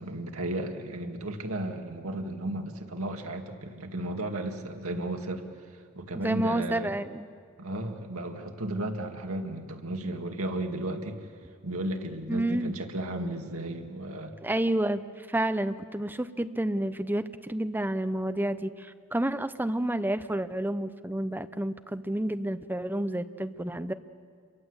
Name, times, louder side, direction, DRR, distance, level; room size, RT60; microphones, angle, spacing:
voice 1, 0.0-7.0 7.6-11.3 11.6-14.3, right 1 dB, 75° right, 4 dB, 2.2 m, -34 dB
voice 2, 6.2-7.3 12.3-12.7 14.4-15.0 15.3-23.9, right 1 dB, 10° right, 10 dB, 0.7 m, -30 dB
29.0 x 23.0 x 8.1 m, 2.1 s
head